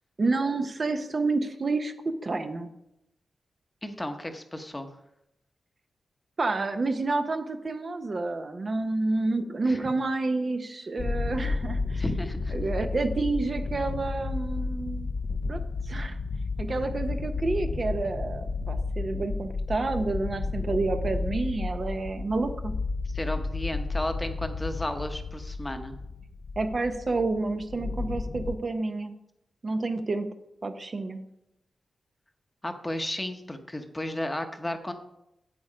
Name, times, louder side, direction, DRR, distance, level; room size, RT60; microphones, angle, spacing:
voice 1, 0.2-1.9 2.2-2.7 6.4-12.0 12.5-15.1 15.5-16.2 16.6-22.7 26.6-29.1 29.6-30.3 30.6-31.2, right 3 dB, 40° right, 7 dB, 0.7 m, -29 dB
voice 2, 3.8-4.9 9.7-9.9 12.0-12.5 23.1-25.9 32.6-34.9, left 1 dB, 10° left, 6 dB, 0.9 m, -33 dB
sound 1, 11.0-28.5, left 3 dB, 50° left, 0.6 m, -32 dB
8.6 x 8.4 x 5.0 m, 0.84 s
wide cardioid pair, 135°, 0 cm